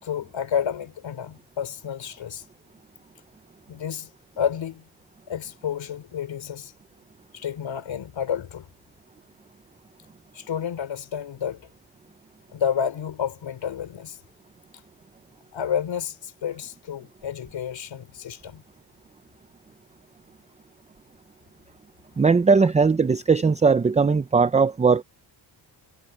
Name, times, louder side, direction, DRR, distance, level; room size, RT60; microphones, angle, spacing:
voice 1, 0.0-2.4 3.7-4.1 4.4-4.9 5.3-6.7 7.3-8.7 10.3-11.7 12.5-14.2 15.5-18.6, left 8 dB, 80° left, 3.3 m, -30 dB
voice 2, 22.2-25.0, right 5 dB, 15° right, 0.4 m, -19 dB
wide cardioid pair, 150°, 45 cm